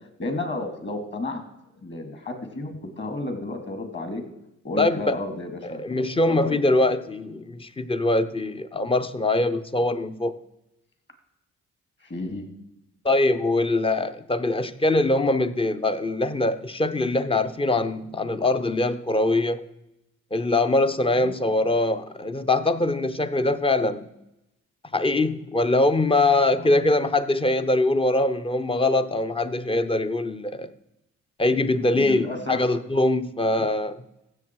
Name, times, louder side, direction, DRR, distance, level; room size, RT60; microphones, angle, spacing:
voice 1, 0.2-1.4 1.8-4.2 4.6-6.6 12.0-12.5 21.2-21.3 26.5-26.8 31.9-32.6, left 2 dB, 40° left, 2.6 m, -32 dB
voice 2, 4.8-5.2 5.6-10.4 13.0-19.6 20.3-24.1 24.9-30.7 31.4-34.0, left 2 dB, 20° left, 0.7 m, -23 dB
15.5 x 6.8 x 4.7 m
cardioid pair, 90°, 30 cm